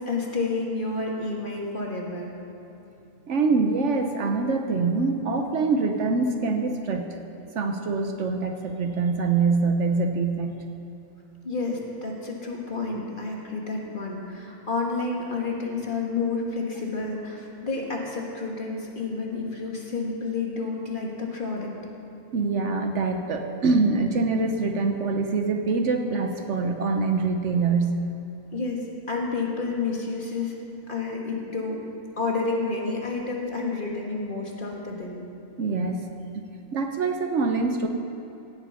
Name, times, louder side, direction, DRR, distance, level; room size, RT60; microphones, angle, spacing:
voice 1, 0.1-2.3 11.4-21.7 28.5-30.6 30.9-31.8 32.2-35.2, left 3 dB, 40° left, -1 dB, 1.8 m, -30 dB
voice 2, 3.3-7.2 7.5-10.6 22.3-28.1 35.6-36.1 36.3-36.4 36.7-37.9, right 4 dB, 65° right, 5 dB, 1.1 m, -24 dB
16.5 x 8.2 x 5.6 m, 3.0 s
omnidirectional pair, 1.4 m